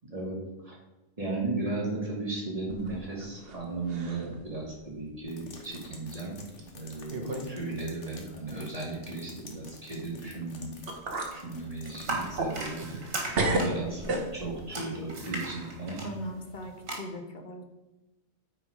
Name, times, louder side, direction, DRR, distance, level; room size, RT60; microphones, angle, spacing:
voice 1, 1.2-6.4 6.7-10.7 11.3-12.8 13.5-16.1, right 2 dB, 30° right, -4 dB, 2.2 m, -35 dB
sound 1, 2.7-3.6 3.9-4.3 4.8-4.9 5.7-5.9 6.6-6.7 7.1-7.5 7.8-7.9 10.4-10.5 10.9-11.4 11.8-13.1 13.3-14.6, right 2 dB, 50° right, 1.3 m, -32 dB
sound 2, 5.3-12.3, left 4 dB, 65° left, 1.5 m, -52 dB
sound 3, 12.0-16.9, right 2 dB, 85° right, 2.2 m, -37 dB
voice 2, 13.6-13.9 16.0-17.6, left 1 dB, 40° left, 5 dB, 1.0 m, -39 dB
9.0 x 4.6 x 4.9 m, 1.0 s
omnidirectional pair, 1.4 m